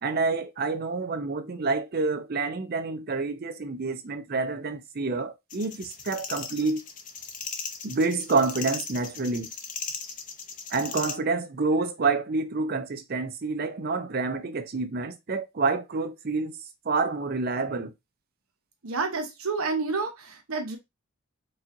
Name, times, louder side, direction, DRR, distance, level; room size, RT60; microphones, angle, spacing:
voice 1, 0.0-6.8 7.8-9.5 10.7-16.5 16.8-17.9, right 3 dB, 45° right, 0.5 m, -28 dB
sound 1, 5.5-11.2, left 6 dB, 35° left, 0.6 m, -37 dB
voice 2, 18.8-20.8, right 4 dB, 85° right, 0.9 m, -29 dB
4.7 x 2.8 x 2.6 m
head